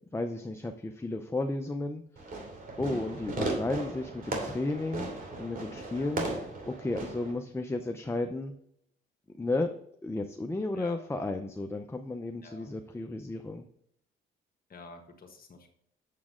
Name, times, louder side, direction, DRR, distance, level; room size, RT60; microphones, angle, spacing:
voice 1, 0.1-2.0 2.8-5.1 5.4-8.5 9.3-9.7 10.0-13.6, left 2 dB, 15° left, 5 dB, 0.7 m, -33 dB
Fireworks, 2.2-7.3, right 2 dB, 45° right, 2.8 m, -36 dB
voice 2, 14.7-15.7, left 3 dB, 45° left, 2 dB, 1.4 m, -49 dB
8.5 x 7.2 x 3.7 m, 0.72 s
cardioid pair, 90°, 20 cm